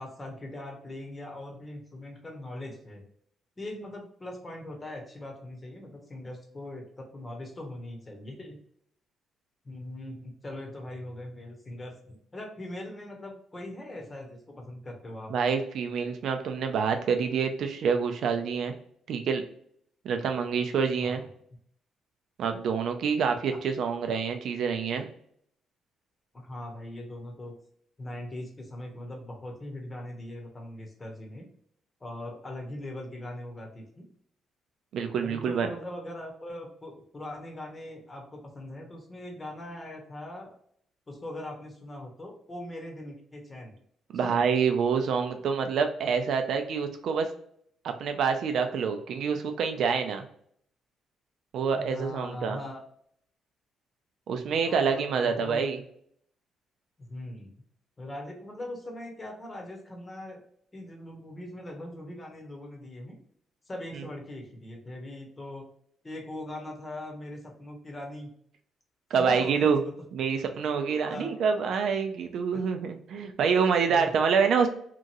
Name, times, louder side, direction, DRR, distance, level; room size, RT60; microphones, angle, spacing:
voice 1, 0.0-3.0 3.6-8.6 9.6-15.3 21.0-21.2 23.5-23.6 26.3-27.6 28.0-31.5 32.0-34.1 35.2-40.6 41.1-43.7 44.2-44.5 51.7-52.8 54.5-55.6 57.0-57.5 58.0-60.4 60.7-63.1 63.7-65.7 66.0-68.3 69.2-69.9 71.1-71.3 72.5-72.6 73.2-73.3 73.8-74.1, left 1 dB, 25° left, 1 dB, 0.9 m, -41 dB
voice 2, 15.3-18.7 19.1-19.4 20.0-21.2 22.4-25.1 34.9-35.7 44.1-47.3 47.8-50.2 51.5-52.6 54.3-55.8 63.9-64.0 69.1-69.8 70.1-74.7, right 6 dB, 70° right, 6 dB, 0.5 m, -27 dB
2.9 x 2.5 x 2.6 m, 0.66 s
cardioid pair, 90°, 0 cm